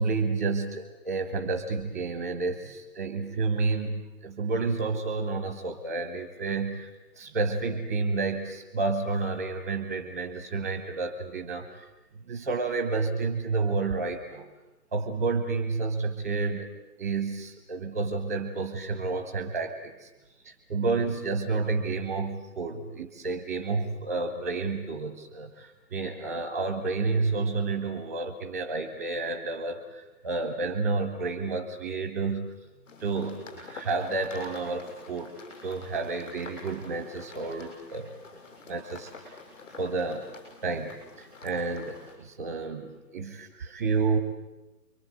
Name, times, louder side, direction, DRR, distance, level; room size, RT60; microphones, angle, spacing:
voice 1, 0.0-6.9 7.2-11.9 12.3-14.5 14.9-16.7 17.0-20.1 20.4-32.5 33.0-35.3 35.6-38.1 38.7-39.4 39.8-44.2, right 3 dB, 10° right, 7 dB, 0.8 m, -30 dB
sound 1, 32.9-42.2, left 3 dB, 50° left, 7.4 m, -48 dB
29.5 x 23.5 x 8.0 m, 1.0 s
figure-of-eight pair, 150°, 49 cm